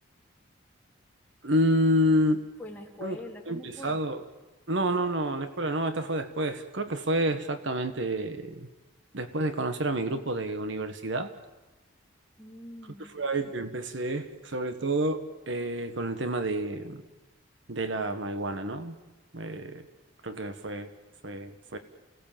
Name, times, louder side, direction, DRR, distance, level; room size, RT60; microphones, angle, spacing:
voice 1, 1.4-2.4 3.0-3.2 3.5-4.2 4.7-8.7 9.1-11.3 13.1-17.0 17.7-19.0 19.3-19.9 20.2-20.9 21.2-21.8, right 1 dB, 70° right, 9 dB, 1.4 m, -29 dB
voice 2, 2.6-4.0 12.4-13.1, left 1 dB, 10° left, -2 dB, 3.5 m, -43 dB
29.0 x 18.0 x 7.4 m, 1.1 s
head